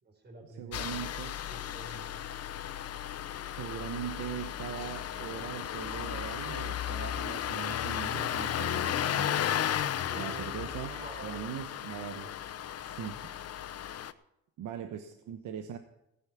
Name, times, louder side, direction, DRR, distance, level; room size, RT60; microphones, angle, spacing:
voice 1, 0.0-2.2 10.1-11.4 13.0-13.2 15.2-15.3, right 2 dB, 35° right, 4 dB, 4.4 m, -49 dB
voice 2, 0.6-1.3 3.5-9.8 10.1-10.9 11.2-12.3 12.8-13.2 14.6-15.8, right 9 dB, 80° right, 7 dB, 1.1 m, -40 dB
Engine starting, 0.7-14.1, left 10 dB, 55° left, 0.8 m, -34 dB
16.0 x 9.7 x 5.8 m, 0.85 s
cardioid pair, 90°, 30 cm